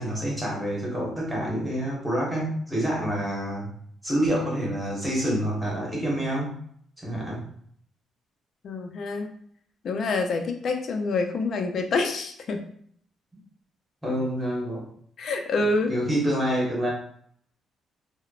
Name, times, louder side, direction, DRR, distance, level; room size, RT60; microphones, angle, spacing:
voice 1, 0.0-3.7 4.0-6.5 7.0-7.4 14.0-14.9 15.9-16.9, equal, 10° right, -4 dB, 1.2 m, -27 dB
voice 2, 8.6-9.3 9.8-12.7 15.2-15.9, left 3 dB, 60° left, 4 dB, 0.4 m, -27 dB
2.9 x 2.0 x 2.4 m, 0.63 s
cardioid pair, 90°, 0 cm